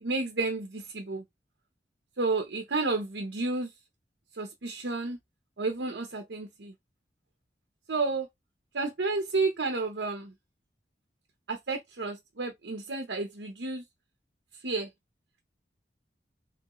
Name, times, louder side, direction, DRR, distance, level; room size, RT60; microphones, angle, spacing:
voice 1, 0.0-1.2 2.2-3.7 4.4-5.2 5.6-6.7 7.9-8.3 8.7-10.3 11.5-13.8 14.6-14.9, right 3 dB, 80° right, 0.9 m, -31 dB
3.2 x 3.1 x 3.7 m
head